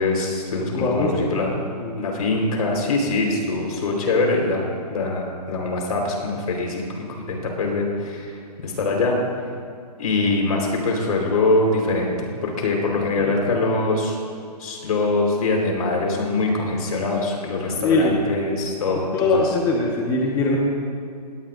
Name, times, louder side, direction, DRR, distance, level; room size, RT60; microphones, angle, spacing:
voice 1, 0.0-1.5 1.9-9.2 10.0-12.1 12.4-14.2 14.6-19.4, left 3 dB, 65° left, 0 dB, 4.2 m, -23 dB
voice 2, 0.5-1.5 1.8-2.0 7.2-7.4 13.2-13.3 17.8-18.2 19.1-20.6, left 3 dB, 15° left, -2 dB, 1.4 m, -22 dB
20.5 x 18.0 x 2.6 m, 2.3 s
hypercardioid pair, 150°, 21 cm